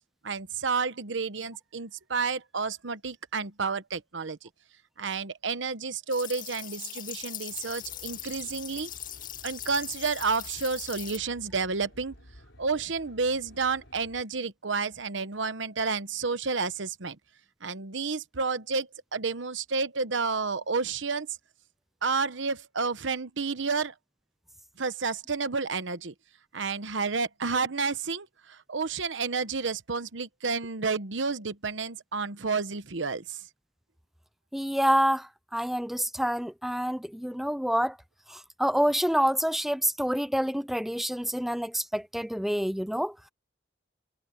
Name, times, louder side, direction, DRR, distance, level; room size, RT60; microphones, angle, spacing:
voice 1, 0.2-4.5 5.0-8.9 9.4-12.1 12.6-17.2 17.6-21.3 22.0-23.9 24.8-26.1 26.5-33.4, right 4 dB, 75° right, 1.0 m, -30 dB
sound 1, 6.1-11.2, left 11 dB, 45° left, 2.1 m, -40 dB
Aircraft, 7.5-14.2, equal, 75° left, 4.8 m, -54 dB
voice 2, 34.5-38.0 38.3-43.1, equal, ahead, 0.5 m, -27 dB
head